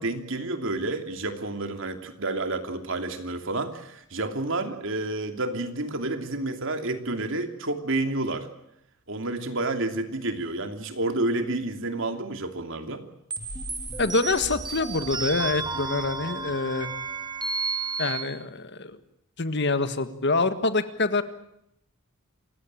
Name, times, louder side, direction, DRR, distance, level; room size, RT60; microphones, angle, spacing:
voice 1, 0.0-8.5 9.1-13.0, right 2 dB, 65° right, 7 dB, 2.8 m, -30 dB
sound 1, 13.3-18.2, right 4 dB, 20° right, 2.5 m, -32 dB
voice 2, 14.0-16.9 18.0-19.0 19.4-21.2, left 3 dB, 55° left, 11 dB, 1.7 m, -26 dB
28.0 x 16.0 x 9.0 m, 0.79 s
head